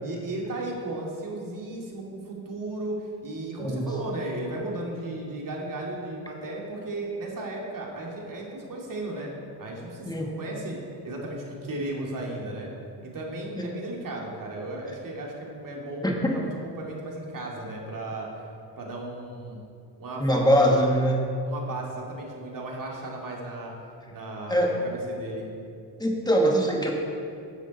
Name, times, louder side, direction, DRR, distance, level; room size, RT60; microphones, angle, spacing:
voice 1, 0.0-9.3 9.6-10.8 11.0-12.7 13.0-16.5 16.8-18.3 18.8-19.6 20.0-20.9 21.5-23.7 24.1-25.5, right 2 dB, 40° right, -2 dB, 2.6 m, -35 dB
voice 2, 16.0-16.4 20.2-21.2 24.5-24.7 26.0-26.9, equal, 10° left, 0 dB, 1.9 m, -22 dB
11.0 x 7.1 x 4.3 m, 2.4 s
hypercardioid pair, 60°, 48 cm